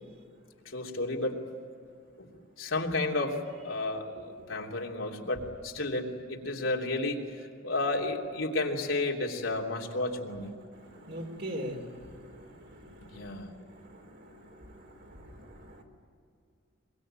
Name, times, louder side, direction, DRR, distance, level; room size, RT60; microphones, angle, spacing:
voice 1, 0.6-1.4 2.2-2.3 2.6-3.4 3.6-7.2 7.6-10.5 13.0-13.5, left 2 dB, 80° left, 0 dB, 3.2 m, -32 dB
voice 2, 10.7-15.8, equal, 55° right, 2 dB, 4.4 m, -43 dB
24.0 x 23.0 x 9.0 m, 2.4 s
head